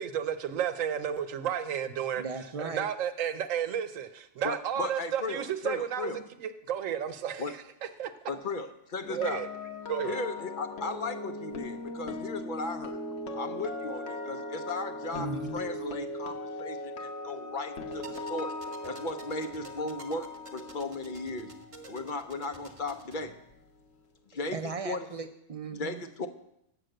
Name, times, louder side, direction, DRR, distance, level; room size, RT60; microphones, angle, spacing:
voice 1, 0.0-2.2 2.6-7.4 8.0-8.1 9.1-9.5 9.9-10.2, right 9 dB, 80° right, 1.1 m, -32 dB
voice 2, 2.2-2.9 15.1-15.6 24.5-26.0, right 4 dB, 60° right, 0.3 m, -37 dB
voice 3, 4.4-6.2 7.4-7.6 8.3-9.4 10.1-13.0 13.3-18.5 18.8-21.5 21.9-23.3 24.3-24.6 24.8-25.0 25.7-26.3, left 3 dB, 50° left, 0.7 m, -36 dB
sound 1, 9.0-23.1 23.3-23.6, left 2 dB, 65° left, 1.2 m, -39 dB
sound 2, 17.9-23.2, right 3 dB, 25° right, 1.0 m, -50 dB
7.7 x 6.4 x 7.7 m
omnidirectional pair, 1.3 m